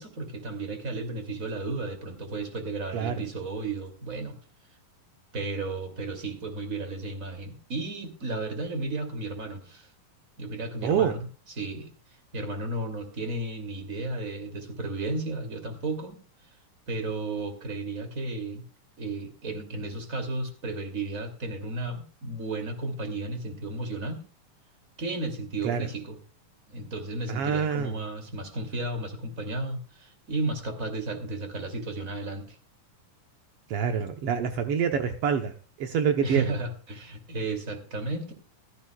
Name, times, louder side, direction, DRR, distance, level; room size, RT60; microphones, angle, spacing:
voice 1, 0.0-4.4 5.3-9.9 10.4-11.2 11.6-11.9 12.3-16.2 16.9-18.6 19.0-24.2 25.0-26.2 26.7-32.6 36.2-38.3, right 2 dB, 25° right, 6 dB, 2.7 m, -33 dB
voice 2, 10.8-11.1 25.6-25.9 27.3-28.0 33.7-35.5 35.8-36.5, right 7 dB, 75° right, 5 dB, 1.4 m, -26 dB
15.5 x 14.5 x 2.3 m, 0.37 s
omnidirectional pair, 4.0 m